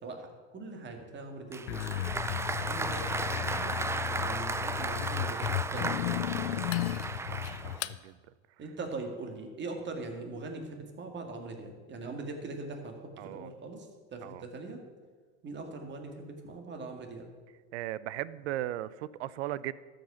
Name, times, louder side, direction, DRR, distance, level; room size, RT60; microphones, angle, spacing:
voice 1, 0.0-2.0 2.6-3.8 4.2-6.0 8.6-14.8 15.4-17.3, right 3 dB, 35° right, 4 dB, 2.0 m, -41 dB
Applause, 1.5-7.9, right 4 dB, 10° right, 0.3 m, -35 dB
sound 1, 1.7-8.0, left 14 dB, 80° left, 0.5 m, -34 dB
voice 2, 7.3-8.2 13.2-13.5 14.2-14.4 17.7-19.7, right 14 dB, 80° right, 19 dB, 0.5 m, -37 dB
12.5 x 5.3 x 6.9 m, 1.5 s
hypercardioid pair, 90°, 33 cm